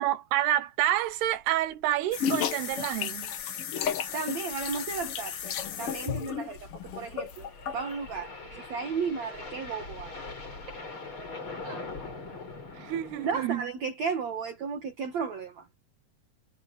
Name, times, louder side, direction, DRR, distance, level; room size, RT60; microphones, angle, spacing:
voice 1, 0.0-3.3 12.7-13.7, right 13 dB, 85° right, 3.2 m, -28 dB
sound 1, 1.2-1.4 1.7-1.8 2.1-2.2 2.7-3.0 4.3-13.6, left 3 dB, 30° left, 5.7 m, -43 dB
sound 2, 2.1-7.9, left 8 dB, 80° left, 1.3 m, -33 dB
voice 2, 4.1-10.2 11.6-11.8 13.2-15.7, right 5 dB, 50° right, 2.6 m, -34 dB
omnidirectional pair, 4.6 m